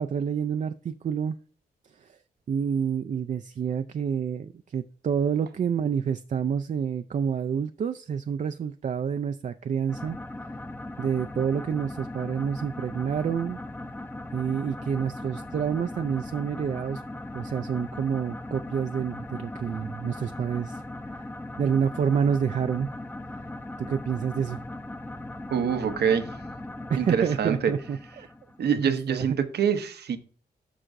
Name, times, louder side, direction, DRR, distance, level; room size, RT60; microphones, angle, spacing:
voice 1, 0.0-1.4 1.9-2.2 2.5-10.2 11.0-13.6 14.3-17.0 17.3-20.8 21.1-21.3 21.6-22.9 23.8-24.6 26.9-28.3 28.6-29.3, right 7 dB, 45° right, 0.4 m, -28 dB
sound 1, 9.9-28.8, left 1 dB, 10° left, 0.6 m, -39 dB
voice 2, 25.5-26.3 27.0-27.7 28.6-30.2, right 7 dB, 80° right, 0.8 m, -25 dB
11.0 x 6.2 x 2.6 m
cardioid pair, 85°, 17 cm